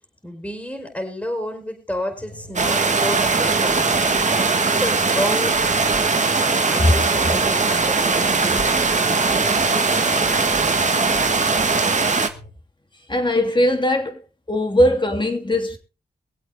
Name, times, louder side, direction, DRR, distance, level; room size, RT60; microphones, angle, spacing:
voice 1, 0.2-5.6 6.7-10.9, equal, 10° left, 4.4 m, -31 dB
sound 1, 2.2-12.5, equal, 65° left, 6.3 m, -42 dB
sound 2, 2.6-12.3, right 4 dB, 45° right, 1.7 m, -20 dB
voice 2, 13.1-14.2 14.5-15.8, left 1 dB, 30° left, 3.1 m, -19 dB
23.0 x 8.0 x 3.6 m
cardioid pair, 55°, 17 cm